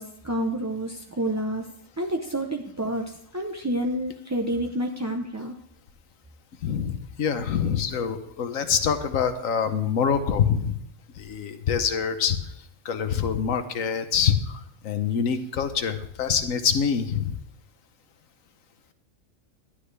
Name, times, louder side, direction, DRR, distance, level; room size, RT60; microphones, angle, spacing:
voice 1, 0.0-1.7 2.0-5.6, right 1 dB, 20° right, 2 dB, 0.5 m, -29 dB
voice 2, 6.6-10.8 11.2-12.4 12.8-17.4, left 7 dB, 80° left, 9 dB, 1.3 m, -25 dB
12.0 x 11.5 x 3.3 m, 0.77 s
omnidirectional pair, 1.4 m